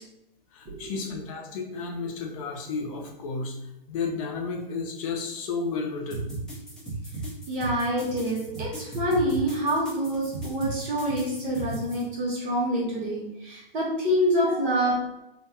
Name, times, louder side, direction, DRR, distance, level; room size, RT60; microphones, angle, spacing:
voice 1, 0.5-3.5 3.9-6.3 14.5-14.7, left 4 dB, 35° left, 1 dB, 0.6 m, -32 dB
sound 1, 6.1-12.0, right 3 dB, ahead, 1.0 m, -36 dB
voice 2, 7.5-14.9, equal, 25° right, -5 dB, 1.1 m, -26 dB
3.8 x 2.4 x 2.7 m, 0.88 s
hypercardioid pair, 130°, 29 cm